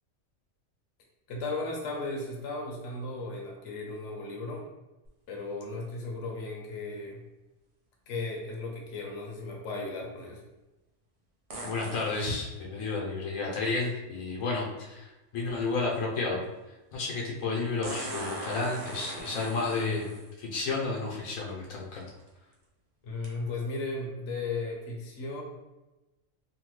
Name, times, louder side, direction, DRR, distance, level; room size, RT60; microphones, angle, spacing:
voice 1, 1.3-4.7 5.3-7.2 8.1-10.4 23.0-25.4, left 3 dB, 70° left, -1 dB, 0.9 m, -36 dB
sound 1, 5.0-5.1 11.5-12.4 14.4-14.5 17.8-20.3 21.3-21.4 22.0-22.3 23.2-23.3, right 1 dB, 50° right, 0.4 m, -40 dB
voice 2, 11.6-16.4 16.7-20.1 20.4-22.1, left 3 dB, 90° left, -3 dB, 1.1 m, -31 dB
3.1 x 2.2 x 3.0 m, 1.0 s
omnidirectional pair, 1.4 m